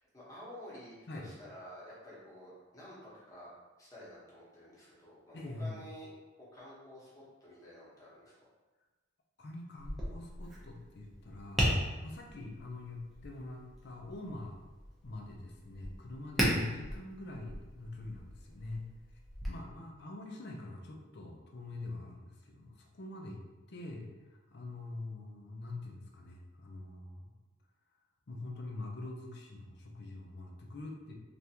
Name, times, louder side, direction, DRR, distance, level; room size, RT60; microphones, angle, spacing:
voice 1, 0.1-3.5 3.8-6.1 6.4-7.1 7.4-8.5, equal, 15° left, -8 dB, 1.0 m, -51 dB
voice 2, 5.3-5.8 9.4-11.7 12.0-14.6 15.0-18.9 19.5-27.3 28.3-31.2, left 2 dB, 55° left, 1 dB, 0.5 m, -44 dB
Tap, 9.8-19.5, equal, ahead, 0.7 m, -38 dB
3.4 x 2.5 x 2.8 m, 1.2 s
head